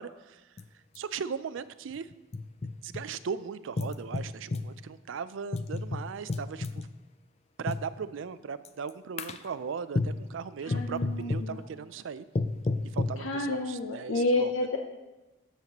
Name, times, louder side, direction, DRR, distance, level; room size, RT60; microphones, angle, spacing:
voice 1, 0.0-2.1 2.8-6.9 7.6-12.3 12.8-14.5, right 6 dB, 75° right, 14 dB, 0.4 m, -38 dB
sound 1, 0.6-0.7 1.0-1.1 1.9-3.0 3.8-4.7 5.5-6.9 7.7-7.9 8.7-8.9 9.2-9.5 10.0-10.3 10.7-11.5 12.4-13.2, left 3 dB, 30° left, 0.3 m, -31 dB
voice 2, 10.6-11.6 13.2-14.8, left 2 dB, 85° left, 2 dB, 0.6 m, -30 dB
12.5 x 7.2 x 2.9 m, 1.1 s
head